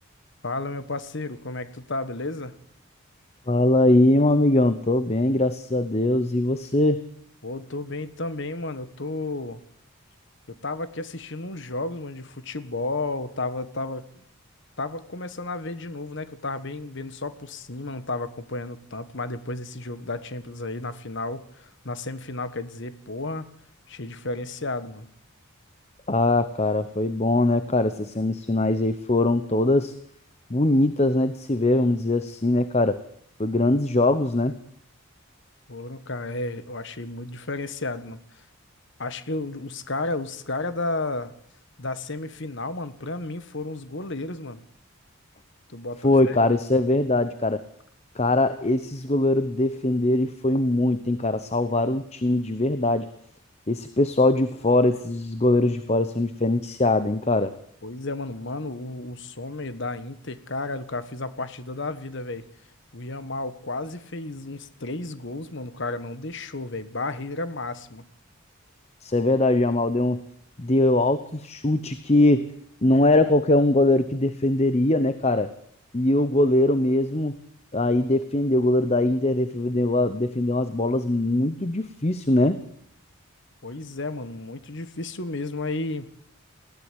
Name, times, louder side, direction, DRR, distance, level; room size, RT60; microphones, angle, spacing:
voice 1, 0.4-2.5 7.4-9.6 10.5-14.0 14.8-23.5 23.9-25.1 35.7-38.4 39.0-41.3 41.8-44.6 45.7-46.4 57.8-62.4 62.9-68.0 83.6-86.1, left 2 dB, 55° left, 12 dB, 1.4 m, -32 dB
voice 2, 3.5-7.0 26.1-29.9 30.5-33.0 33.4-34.5 46.0-47.6 48.2-53.1 53.7-57.5 69.0-70.2 70.6-72.5 72.8-75.5 75.9-77.3 77.7-82.6, left 2 dB, 30° left, 11 dB, 0.9 m, -21 dB
19.5 x 15.5 x 9.8 m, 0.69 s
head